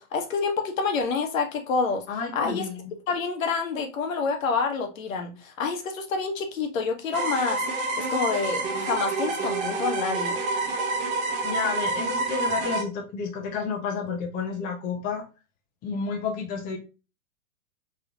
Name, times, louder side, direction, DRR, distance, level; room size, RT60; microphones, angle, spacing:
voice 1, 0.0-2.1 2.3-2.7 3.1-7.6 8.0-10.4, left 4 dB, 65° left, 1.2 m, -28 dB
voice 2, 2.1-2.9 11.4-15.2 15.8-16.8, left 5 dB, 20° left, 0.7 m, -30 dB
sound 1, 7.1-12.8, right 3 dB, 15° right, 0.5 m, -28 dB
3.7 x 3.2 x 2.4 m
hypercardioid pair, 125°, 44 cm